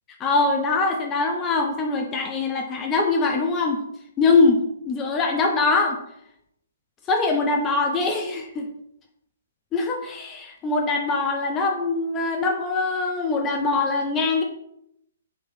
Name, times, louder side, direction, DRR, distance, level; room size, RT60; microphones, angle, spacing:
voice 1, 0.2-3.8 4.2-4.6 4.8-6.0 7.1-8.7 9.7-14.4, left 3 dB, 20° left, 3 dB, 0.5 m, -22 dB
5.0 x 3.0 x 3.3 m, 0.77 s
figure-of-eight pair, 125°, 0 cm